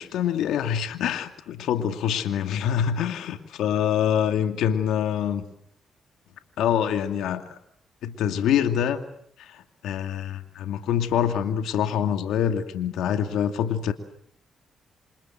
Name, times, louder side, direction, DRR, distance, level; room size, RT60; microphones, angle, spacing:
voice 1, 0.0-5.4 6.6-7.6 8.0-9.0 9.4-13.9, left 9 dB, 85° left, 7 dB, 2.5 m, -25 dB
28.5 x 26.0 x 7.7 m, 0.69 s
cardioid pair, 75°, 0 cm